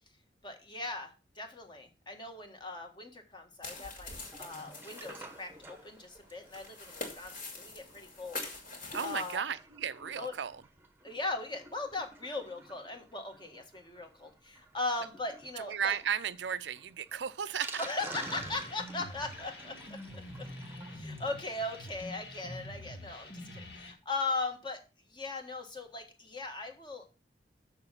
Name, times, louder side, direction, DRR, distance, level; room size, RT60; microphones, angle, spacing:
voice 1, 0.4-8.4 9.0-9.4 10.2-10.3 11.0-15.9 17.8-19.7 20.9-24.8 25.1-27.0, left 3 dB, 25° left, 1.5 m, -39 dB
sound 1, 3.6-9.4, left 3 dB, 50° left, 2.7 m, -44 dB
Sink (filling or washing), 4.2-22.2 22.5-22.6 22.8-22.9 23.3-23.4, right 2 dB, 15° right, 1.0 m, -51 dB
voice 2, 8.9-10.6 15.6-17.8, right 7 dB, 90° right, 0.5 m, -35 dB
sound 2, 18.2-23.9, left 1 dB, 65° left, 1.8 m, -46 dB
6.9 x 6.8 x 5.7 m
head